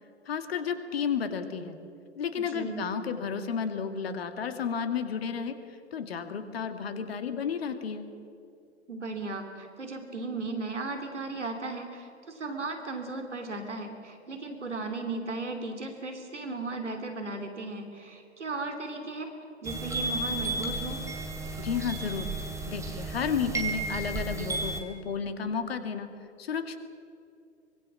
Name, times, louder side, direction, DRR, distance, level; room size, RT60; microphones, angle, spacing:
voice 1, 0.3-1.7 2.2-8.1 21.6-22.3 22.7-26.1 26.4-26.8, left 6 dB, 55° left, 8 dB, 2.3 m, -32 dB
voice 2, 2.4-2.8 8.9-19.3 19.6-21.0, right 3 dB, 75° right, 5 dB, 3.1 m, -36 dB
sound 1, 19.6-24.8, right 2 dB, 10° right, 2.5 m, -33 dB
24.5 x 23.0 x 7.4 m, 2.5 s
figure-of-eight pair, 110°, 35 cm